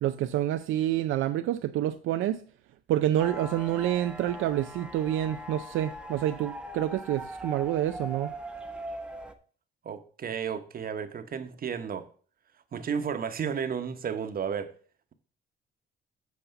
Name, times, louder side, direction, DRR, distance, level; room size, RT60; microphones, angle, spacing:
voice 1, 0.0-2.4 2.9-8.3, right 12 dB, 85° right, 0.5 m, -28 dB
sound 1, 3.2-9.3, equal, 5° right, 0.9 m, -40 dB
voice 2, 9.8-12.1 12.7-14.7, right 7 dB, 50° right, 1.1 m, -33 dB
8.1 x 4.2 x 6.9 m
cardioid pair, 90°, 20 cm